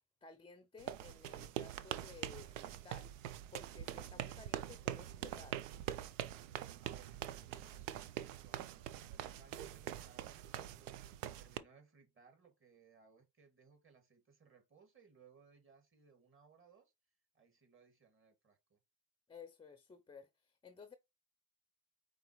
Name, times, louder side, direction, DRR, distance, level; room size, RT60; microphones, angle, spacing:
voice 1, 0.2-3.1 3.5-5.6 19.3-21.0, left 5 dB, 15° left, 0.5 m, -56 dB
sound 1, 0.8-11.6, right 12 dB, 80° right, 0.5 m, -44 dB
voice 2, 6.8-11.0 11.4-16.9 17.3-18.8, right 5 dB, 30° right, 2.1 m, -65 dB
4.9 x 3.4 x 3.0 m
hypercardioid pair, 60°, 39 cm